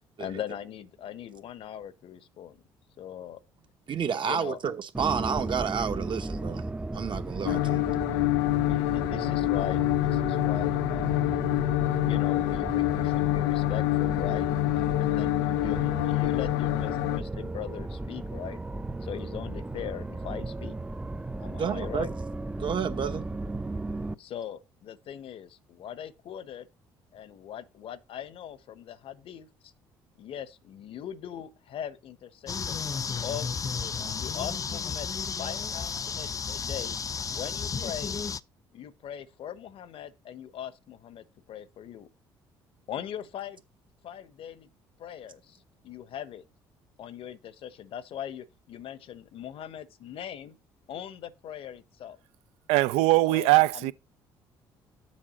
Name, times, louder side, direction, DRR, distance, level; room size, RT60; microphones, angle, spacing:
voice 1, 0.2-2.6 3.0-3.4 4.2-4.6 8.6-11.4 12.0-18.6 19.0-20.8 21.4-22.1 24.2-26.7 27.1-29.7 30.2-32.8 33.2-35.1 35.4-37.0 37.3-38.2 38.7-42.1 42.9-43.6 44.0-44.7 45.0-45.6 45.8-46.4 47.0-50.6 50.9-52.2 53.3-53.9, left 10 dB, 60° left, 1.0 m, -40 dB
voice 2, 3.9-6.6 6.9-7.9 21.6-22.1 22.6-23.2, right 7 dB, 50° right, 0.9 m, -30 dB
engine rise up, 4.9-24.1, right 2 dB, 10° right, 0.6 m, -35 dB
sound 1, 7.4-17.2, left 21 dB, 85° left, 0.5 m, -26 dB
sound 2, 32.5-38.4, left 6 dB, 30° left, 0.5 m, -33 dB
voice 3, 52.7-53.9, right 19 dB, 80° right, 0.5 m, -21 dB
7.5 x 3.6 x 6.3 m
hypercardioid pair, 60°, 11 cm